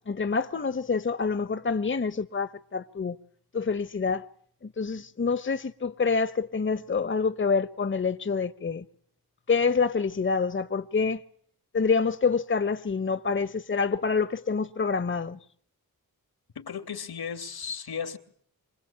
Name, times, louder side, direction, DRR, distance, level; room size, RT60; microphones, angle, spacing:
voice 1, 0.1-3.2 3.5-4.3 4.8-8.8 9.5-11.2 11.7-15.4, left 5 dB, 30° left, 1.1 m, -27 dB
voice 2, 16.5-18.2, left 7 dB, 80° left, 3.0 m, -35 dB
26.5 x 19.0 x 8.8 m
cardioid pair, 60°, 37 cm